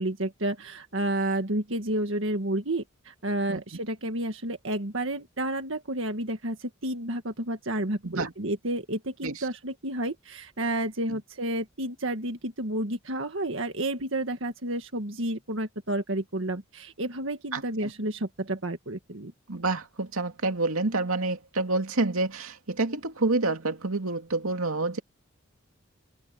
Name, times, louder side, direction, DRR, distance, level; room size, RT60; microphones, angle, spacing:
voice 1, 0.0-19.3, right 1 dB, 65° right, 1.8 m, -31 dB
voice 2, 17.5-17.9 19.5-25.0, right 3 dB, 90° right, 2.5 m, -28 dB
open air
head